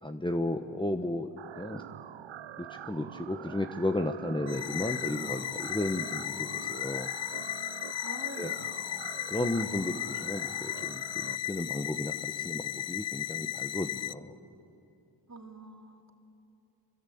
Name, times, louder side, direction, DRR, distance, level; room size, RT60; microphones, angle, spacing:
voice 1, 0.0-1.3 1.6-1.8 2.6-7.1 8.4-8.5 9.3-14.3, left 1 dB, 10° left, 5 dB, 1.1 m, -34 dB
sound 1, 1.4-11.4, right 10 dB, 75° right, 0.7 m, -45 dB
sound 2, 4.5-14.1, left 12 dB, 65° left, 0.6 m, -36 dB
voice 2, 8.0-8.7 15.3-16.1, right 2 dB, 35° right, 2 dB, 3.0 m, -45 dB
27.5 x 24.5 x 8.6 m, 2.7 s
wide cardioid pair, 70°, 47 cm